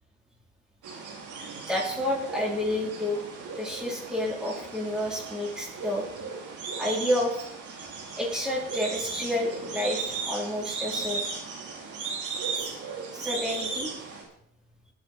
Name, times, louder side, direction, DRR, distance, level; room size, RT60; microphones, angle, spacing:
sound 1, 0.8-14.2, right 4 dB, 75° right, 4.2 m, -36 dB
voice 1, 1.6-3.2 3.6-6.1 6.8-7.4 8.2-11.2 12.6-12.8 13.1-13.9, left 1 dB, ahead, -3 dB, 3.9 m, -30 dB
19.5 x 6.9 x 4.5 m, 0.71 s
cardioid pair, 90°, 30 cm